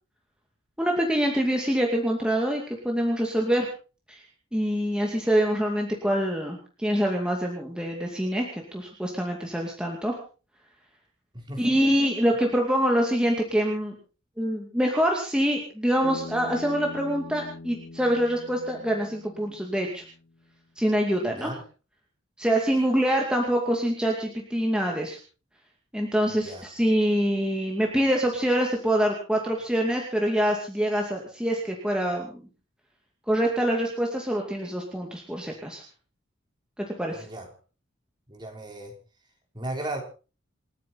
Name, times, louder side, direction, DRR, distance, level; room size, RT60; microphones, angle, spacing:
voice 1, 0.8-3.7 4.1-4.2 4.5-10.2 11.6-13.9 14.4-20.0 20.8-21.5 22.4-25.2 25.9-32.5 33.3-35.8 36.8-37.3, equal, 5° right, 0 dB, 2.4 m, -25 dB
voice 2, 11.3-11.8 21.3-21.6 26.3-26.6 37.1-37.5 38.3-39.0 39.5-40.0, right 1 dB, 20° right, 2 dB, 3.5 m, -36 dB
Bass guitar, 16.0-20.3, left 2 dB, 60° left, 2.4 m, -42 dB
28.5 x 9.6 x 4.2 m, 0.35 s
head